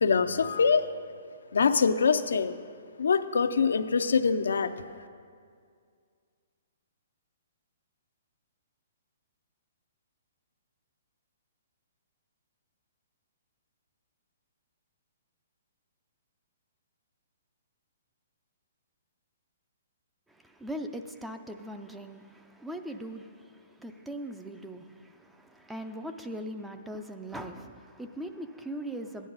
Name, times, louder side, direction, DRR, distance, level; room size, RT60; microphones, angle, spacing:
voice 1, 0.0-0.8 1.5-2.5 3.0-4.7, left 5 dB, 90° left, 9 dB, 0.5 m, -24 dB
voice 2, 20.4-23.5 23.8-29.3, right 1 dB, 5° right, 7 dB, 0.4 m, -40 dB
15.0 x 10.0 x 4.0 m, 2.2 s
hypercardioid pair, 160°, 0 cm